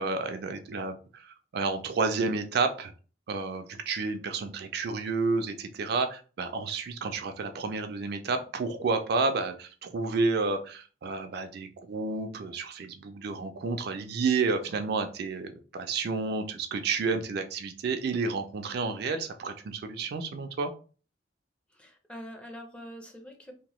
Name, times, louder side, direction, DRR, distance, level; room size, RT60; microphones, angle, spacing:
voice 1, 0.0-2.9 3.3-20.7, right 4 dB, 60° right, 7 dB, 0.4 m, -30 dB
voice 2, 21.7-23.5, equal, 5° left, 3 dB, 0.5 m, -44 dB
2.8 x 2.1 x 3.0 m, 0.37 s
head